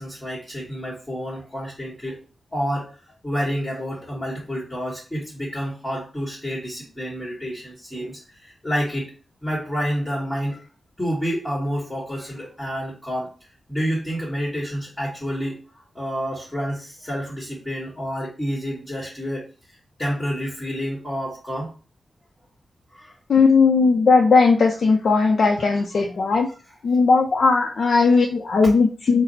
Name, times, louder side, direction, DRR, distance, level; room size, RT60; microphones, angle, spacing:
voice 1, 0.0-2.2 2.5-2.9 3.2-9.1 9.4-10.6 11.0-13.3 13.7-15.6 15.9-19.4 20.0-21.7 22.9-23.1, equal, 10° left, -6 dB, 1.3 m, -29 dB
voice 2, 23.3-26.5 26.8-29.2, left 4 dB, 60° left, 1 dB, 0.5 m, -17 dB
4.1 x 2.0 x 4.0 m, 0.35 s
wide cardioid pair, 115°, 0 cm